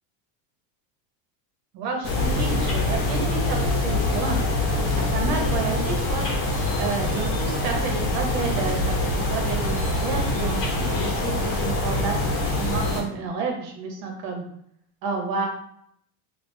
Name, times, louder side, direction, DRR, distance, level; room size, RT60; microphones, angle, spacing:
voice 1, 1.7-4.4 5.0-6.3 6.8-12.2 12.6-14.4 15.0-15.5, right 4 dB, 80° right, 2 dB, 1.1 m, -30 dB
sound 1, 2.0-13.0, left 2 dB, 30° left, 0.8 m, -24 dB
3.3 x 2.4 x 3.2 m, 0.71 s
supercardioid pair, 135°, 49 cm